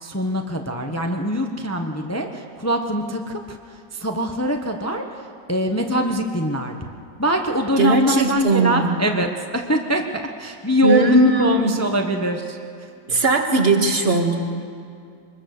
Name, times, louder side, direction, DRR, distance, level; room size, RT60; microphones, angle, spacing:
voice 1, 0.0-5.2 5.5-6.8 7.2-12.6, right 1 dB, 10° left, 4 dB, 0.8 m, -23 dB
voice 2, 7.8-9.0 10.8-11.8 13.1-14.3, right 2 dB, 30° right, 3 dB, 2.0 m, -18 dB
24.5 x 21.0 x 6.7 m, 2.4 s
omnidirectional pair, 2.1 m